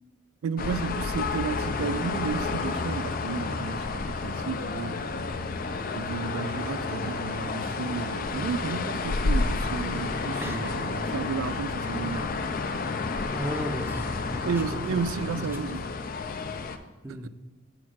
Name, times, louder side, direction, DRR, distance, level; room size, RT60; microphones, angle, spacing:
voice 1, 0.4-5.3 5.9-12.6 14.4-15.9 17.1-17.3, right 5 dB, 80° right, 0.3 m, -33 dB
sound 1, 0.6-16.8, left 3 dB, 40° left, 0.4 m, -30 dB
voice 2, 10.4-10.7 13.3-14.8 15.4-15.6 17.0-17.3, equal, 10° right, 0.6 m, -35 dB
6.3 x 4.6 x 6.1 m
head